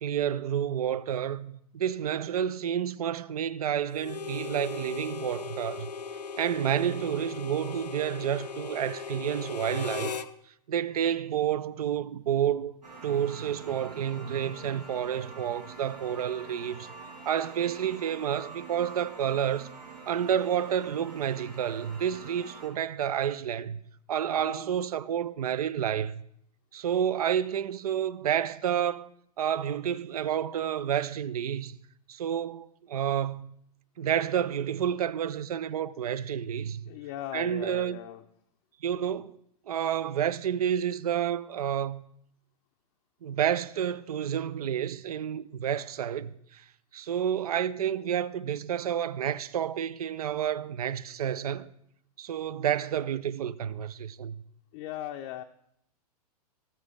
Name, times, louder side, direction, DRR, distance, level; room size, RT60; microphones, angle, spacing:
voice 1, 0.0-5.9 6.4-10.2 10.7-12.7 13.0-16.9 17.3-19.7 20.1-23.8 24.1-26.1 26.7-29.1 29.4-31.8 32.1-33.5 34.0-36.8 37.3-38.0 38.8-39.3 39.7-42.0 43.2-46.6 46.9-51.7 52.2-54.4, right 9 dB, 70° right, 0.5 m, -30 dB
Harmonica, 4.0-10.3, left 5 dB, 85° left, 0.5 m, -38 dB
sound 1, 12.8-22.7, right 4 dB, 90° right, 2.3 m, -46 dB
voice 2, 24.3-24.7 36.9-38.2 54.7-55.4, left 12 dB, 40° left, 0.5 m, -39 dB
13.5 x 7.5 x 3.3 m
figure-of-eight pair, 110°, 20 cm